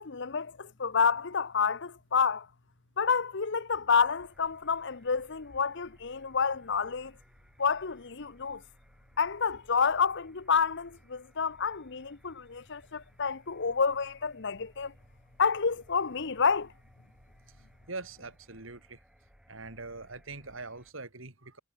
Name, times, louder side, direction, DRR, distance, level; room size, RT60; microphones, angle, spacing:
voice 1, 0.0-2.5 3.0-7.1 7.6-8.6 9.2-14.9 15.4-16.7, left 5 dB, 65° left, 1.0 m, -29 dB
sound 1, 4.0-20.9, equal, 5° right, 5.0 m, -62 dB
voice 2, 17.9-19.0 19.5-21.6, right 3 dB, 75° right, 3.9 m, -42 dB
head